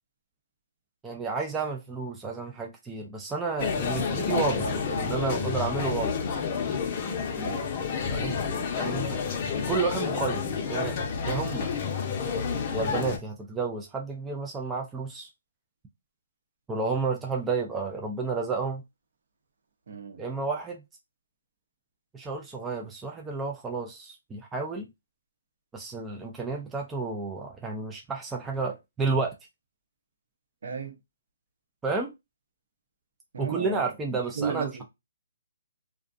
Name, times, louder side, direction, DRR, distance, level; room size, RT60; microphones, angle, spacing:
voice 1, 1.0-6.1 8.1-9.4 9.7-10.4 10.7-11.0 11.2-11.7 12.7-15.3 16.7-18.8 20.2-20.8 22.1-24.9 25.7-29.3 31.8-32.1 33.4-34.8, right 4 dB, 10° right, 0.3 m, -31 dB
sound 1, 3.6-13.2, left 6 dB, 35° left, 0.6 m, -30 dB
voice 2, 4.6-5.1 7.3-7.7 19.9-20.2 30.6-30.9 33.3-33.8 34.4-34.8, right 6 dB, 65° right, 0.8 m, -34 dB
2.4 x 2.3 x 2.5 m
hypercardioid pair, 155°, 0 cm